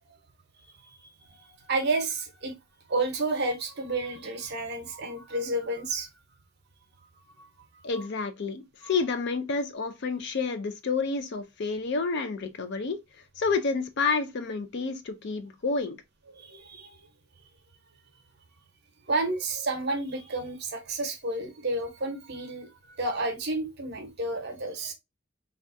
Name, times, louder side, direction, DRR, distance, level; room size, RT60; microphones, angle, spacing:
voice 1, 1.3-2.5 2.9-6.1 7.4-7.5 8.8-8.9 16.4-17.0 19.1-22.7 23.0-24.9, right 2 dB, 50° right, 0.8 m, -31 dB
voice 2, 7.8-16.0, left 4 dB, 55° left, 0.4 m, -29 dB
3.4 x 2.3 x 2.5 m
head